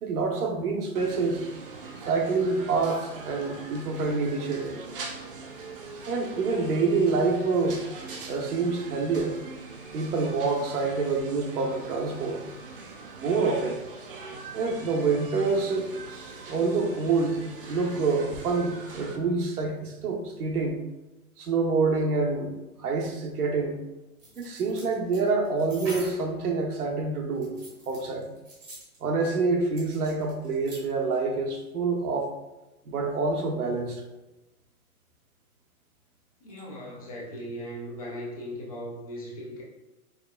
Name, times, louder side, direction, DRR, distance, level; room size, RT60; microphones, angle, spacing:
voice 1, 0.0-1.4 1.9-4.8 6.1-7.8 8.3-9.4 9.9-12.4 13.1-13.8 14.5-17.4 17.7-20.8 21.4-23.8 24.4-27.6 27.9-28.3 29.0-32.3 32.9-34.0, right 4 dB, 85° right, 2 dB, 0.9 m, -27 dB
sound 1, 0.9-19.2, right 4 dB, 40° right, 0.4 m, -42 dB
sound 2, 24.2-26.3 27.3-29.0 29.8-30.8 31.1-31.2, right 2 dB, 15° right, 0.8 m, -44 dB
voice 2, 36.4-39.6, equal, 25° left, -4 dB, 0.4 m, -38 dB
4.7 x 2.9 x 2.2 m, 1.0 s
hypercardioid pair, 160°, 44 cm